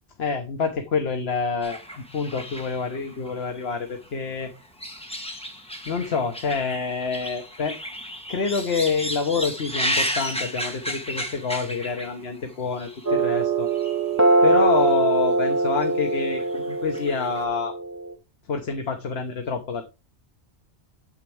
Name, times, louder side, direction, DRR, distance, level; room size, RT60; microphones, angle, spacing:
voice 1, 0.2-4.5 5.9-7.8 8.3-13.7 14.4-17.7 18.5-19.8, left 5 dB, 65° left, 5 dB, 1.3 m, -27 dB
sound 1, 1.6-4.1 4.4-12.4 12.7-13.1 13.7-14.2 14.5-14.6 15.5-15.9 16.1-17.4, equal, 5° left, 1.6 m, -33 dB
sound 2, 13.1-18.1, right 3 dB, 15° right, 1.1 m, -22 dB
8.8 x 7.4 x 3.4 m, 0.27 s
omnidirectional pair, 1.2 m